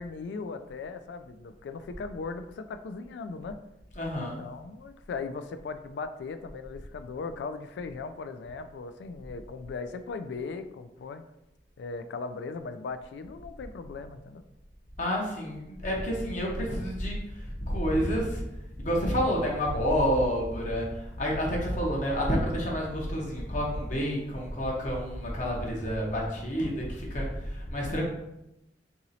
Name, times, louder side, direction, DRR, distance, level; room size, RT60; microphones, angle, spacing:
voice 1, 0.0-3.6 4.2-11.2 11.8-14.4, left 4 dB, 70° left, 10 dB, 0.3 m, -38 dB
voice 2, 4.0-4.4 15.0-18.4 18.8-28.0, equal, 45° left, -2 dB, 0.7 m, -29 dB
2.9 x 2.7 x 4.0 m, 0.89 s
head